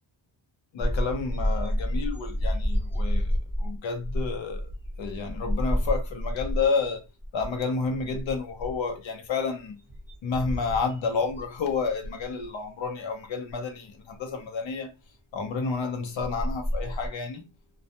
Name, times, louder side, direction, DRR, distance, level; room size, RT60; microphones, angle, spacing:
voice 1, 0.7-4.7 5.0-7.0 7.3-9.8 10.2-14.9 15.3-17.5, left 4 dB, 75° left, 0.8 m, -30 dB
sound 1, 0.8-6.9 7.2-7.6 7.9-8.9 9.5-11.8 12.2-12.4 13.5-13.6 15.7-15.8 16.2-17.1, equal, 5° right, 0.8 m, -29 dB
2.3 x 2.1 x 2.8 m
wide cardioid pair, 165°, 46 cm